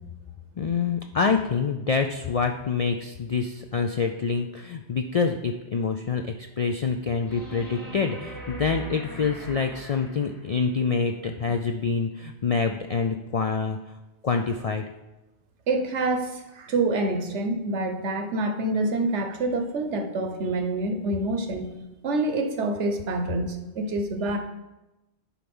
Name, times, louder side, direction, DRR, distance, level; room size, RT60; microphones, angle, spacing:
voice 1, 0.6-13.8 14.2-14.8, left 5 dB, 60° left, 5 dB, 0.3 m, -26 dB
sound 1, 7.3-10.6 13.3-13.4, right 1 dB, 35° left, 1.8 m, -40 dB
voice 2, 15.7-21.7 22.0-24.4, right 2 dB, 80° right, 5 dB, 1.2 m, -27 dB
10.0 x 4.5 x 5.4 m, 1.0 s
omnidirectional pair, 1.2 m